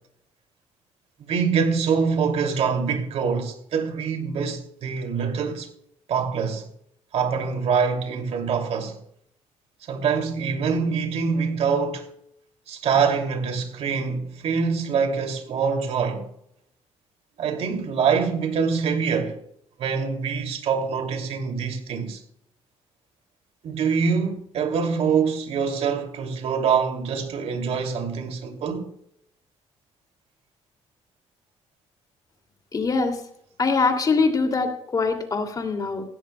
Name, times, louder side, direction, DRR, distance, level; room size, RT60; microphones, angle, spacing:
voice 1, 1.3-5.7 6.1-6.7 7.1-9.0 9.8-12.1 12.7-16.3 17.4-19.4 19.8-22.2 23.6-28.9, right 6 dB, 70° right, 2.6 m, -25 dB
voice 2, 32.7-33.2 33.6-36.0, left 4 dB, 35° left, 2.6 m, -23 dB
16.5 x 16.5 x 2.3 m
cardioid pair, 110°, 11 cm